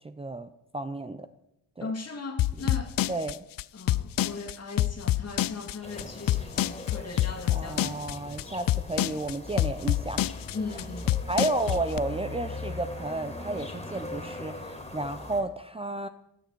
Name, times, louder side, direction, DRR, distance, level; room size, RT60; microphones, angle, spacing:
voice 1, 0.0-1.3 1.8-1.9 3.1-3.4 7.5-10.3 11.3-16.1, right 2 dB, 15° right, 0.6 m, -32 dB
voice 2, 1.8-2.9 3.7-8.0 10.5-11.1, left 3 dB, 40° left, 2.1 m, -38 dB
sound 1, 2.4-12.0, left 14 dB, 60° left, 0.5 m, -26 dB
sound 2, 5.8-15.4, left 1 dB, 15° left, 2.5 m, -40 dB
20.0 x 6.8 x 4.6 m
cardioid pair, 75°, 39 cm